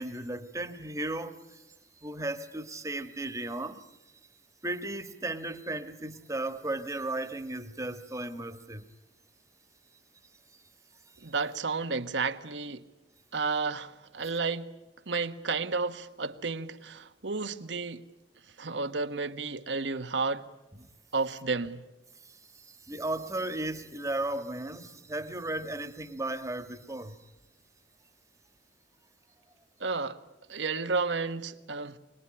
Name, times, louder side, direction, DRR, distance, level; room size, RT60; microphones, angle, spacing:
voice 1, 0.0-1.6 2.0-3.8 4.6-8.8 22.7-27.1, right 2 dB, 20° right, 1.5 m, -35 dB
voice 2, 11.2-12.8 13.3-14.7 15.1-18.0 18.6-20.5 21.1-21.8 29.8-30.2 30.5-32.0, right 4 dB, 85° right, 1.3 m, -32 dB
25.5 x 20.0 x 9.9 m
head